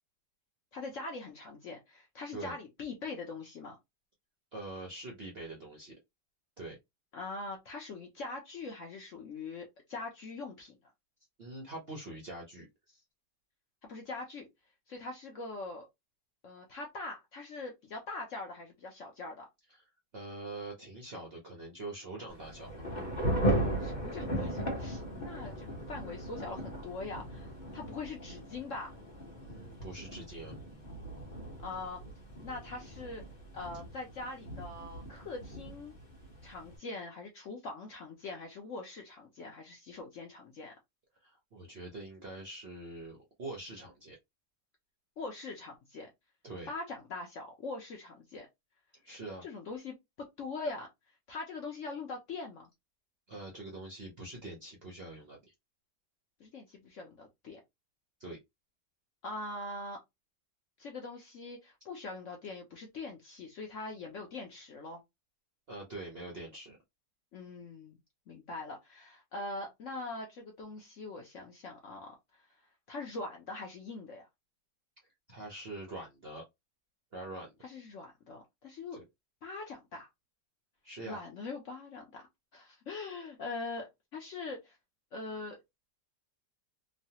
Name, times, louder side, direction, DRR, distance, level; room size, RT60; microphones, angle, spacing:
voice 1, 0.7-3.8 7.1-10.8 13.9-14.5 14.9-15.9 16.4-19.5 23.8-28.9 31.6-32.0 32.4-33.2 33.5-35.9 36.4-40.7 45.2-46.1 46.7-48.5 49.4-50.9 51.3-52.7 56.4-57.6 59.2-60.0 60.8-65.0 67.3-68.0 68.3-72.5 72.9-74.3 77.6-79.0 79.4-80.1 81.0-82.3 82.5-84.8 85.1-85.6, left 3 dB, 60° left, 0.8 m, -42 dB
voice 2, 4.5-5.9 6.6-6.8 11.4-13.0 20.1-22.7 29.4-30.6 41.2-44.2 46.4-46.7 48.9-49.4 53.3-55.5 58.2-58.4 65.7-66.8 75.3-76.4 77.1-77.5 78.9-79.0 80.8-81.2, right 2 dB, 60° right, 0.6 m, -44 dB
Thunder / Rain, 22.3-36.8, right 1 dB, 30° left, 1.0 m, -37 dB
3.1 x 2.2 x 2.8 m
omnidirectional pair, 1.9 m